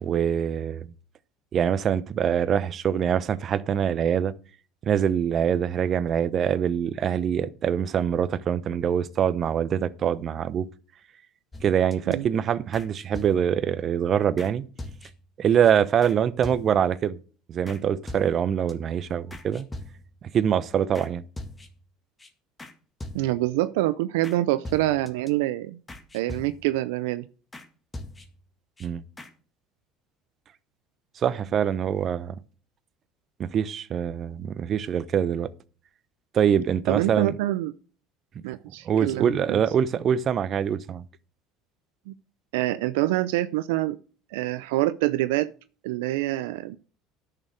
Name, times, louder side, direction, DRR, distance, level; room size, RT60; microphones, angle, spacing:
voice 1, 0.0-0.9 1.5-4.3 4.8-10.7 11.6-14.6 15.4-17.2 17.5-19.7 20.3-21.2 28.8-29.0 31.2-32.4 33.4-35.5 36.3-37.3 38.8-41.0, right 8 dB, 45° right, 0.8 m, -24 dB
sound 1, 11.5-12.1 12.7-13.7 14.4-14.5 14.8-15.3 15.6-15.7 16.0-16.2 16.4-17.0 17.7-17.8 18.1-18.7 19.3-20.2 20.9-21.1 21.4-21.9 22.2-22.3 22.6-22.7 23.0-23.5 24.2-24.4 24.6-25.3 25.9-26.8 27.5-27.7 27.9-28.5 28.8-28.9 29.2-29.3, left 1 dB, 20° left, 2.0 m, -41 dB
voice 2, 23.1-25.8 26.1-27.3 36.9-37.8 38.4-39.6 42.1-42.2 42.5-44.0 44.3-45.5 45.8-46.8, right 16 dB, 80° right, 0.5 m, -26 dB
10.5 x 6.7 x 6.5 m
hypercardioid pair, 85°, 0 cm